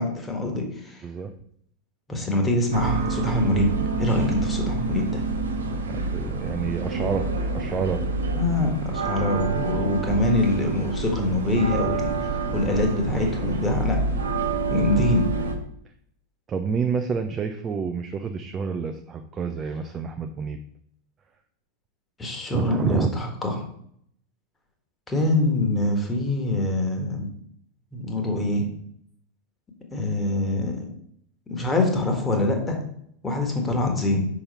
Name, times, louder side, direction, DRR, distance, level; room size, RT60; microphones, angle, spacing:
voice 1, 0.0-1.0 2.1-3.7 4.0-5.2 8.3-14.0 14.7-15.3 22.2-23.6 25.1-27.3 27.9-28.7 29.9-30.9 31.5-32.8 33.2-34.3, left 2 dB, 15° left, 3 dB, 1.5 m, -24 dB
voice 2, 1.0-1.3 5.9-8.0 16.5-20.6 22.5-23.1, right 5 dB, 25° right, 6 dB, 0.5 m, -28 dB
sound 1, 2.7-15.5, right 3 dB, 70° right, 0.9 m, -27 dB
5.6 x 5.1 x 4.2 m, 0.68 s
figure-of-eight pair, 90°, 0 cm